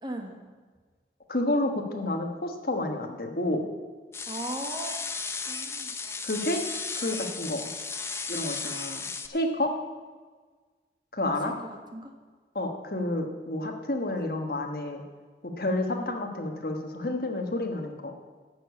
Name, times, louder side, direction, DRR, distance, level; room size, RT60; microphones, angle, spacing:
voice 1, 0.0-0.4 4.3-5.0 5.5-5.9 11.4-12.1 16.0-16.1, right 1 dB, 25° right, 3 dB, 1.3 m, -37 dB
voice 2, 1.3-3.7 6.2-6.6 6.9-7.7 8.3-9.7 11.1-11.5 12.5-15.0 15.6-18.1, left 1 dB, 55° left, 4 dB, 1.3 m, -30 dB
sound 1, 4.1-9.3, left 4 dB, 15° left, 0.5 m, -35 dB
11.5 x 6.8 x 8.4 m, 1.4 s
head